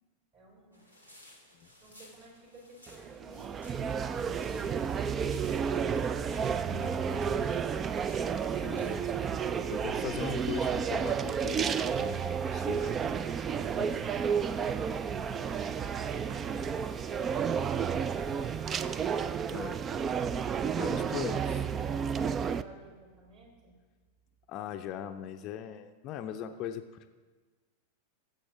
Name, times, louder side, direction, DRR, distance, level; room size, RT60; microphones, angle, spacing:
voice 1, 0.3-0.8 1.8-7.8 13.8-18.3 19.2-19.8 22.1-23.7, right 3 dB, 40° right, -2 dB, 3.7 m, -54 dB
sound 1, 0.7-9.1, left 1 dB, 85° right, 2.0 m, -58 dB
sound 2, 2.9-22.6, right 7 dB, 25° right, 0.4 m, -31 dB
voice 2, 6.7-7.6 8.6-9.1 9.7-13.3 13.6-13.9 19.5-19.8 20.8-21.6 24.5-27.1, left 9 dB, 35° left, 8 dB, 0.5 m, -40 dB
sound 3, 7.8-19.2, left 6 dB, 5° left, 0.8 m, -58 dB
17.5 x 7.8 x 3.7 m, 1.4 s
figure-of-eight pair, 90°, 0 cm